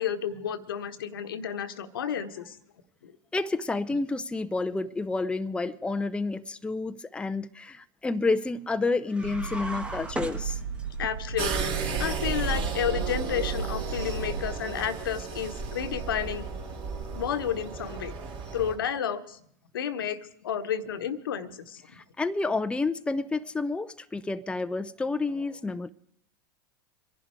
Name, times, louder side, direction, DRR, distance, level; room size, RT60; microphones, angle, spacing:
voice 1, 0.0-2.6 11.0-11.7 12.0-16.5 17.1-18.1 18.5-19.4 19.7-21.8, left 8 dB, 80° left, 1.3 m, -31 dB
voice 2, 3.3-10.6 21.9-25.9, left 3 dB, 10° left, 0.6 m, -29 dB
sound 1, 9.1-11.1, right 1 dB, 10° right, 1.3 m, -37 dB
sound 2, 9.2-14.4, right 6 dB, 80° right, 1.4 m, -36 dB
sound 3, 11.4-18.8, right 5 dB, 45° right, 3.6 m, -33 dB
25.0 x 11.0 x 4.7 m
hypercardioid pair, 95°, 12 cm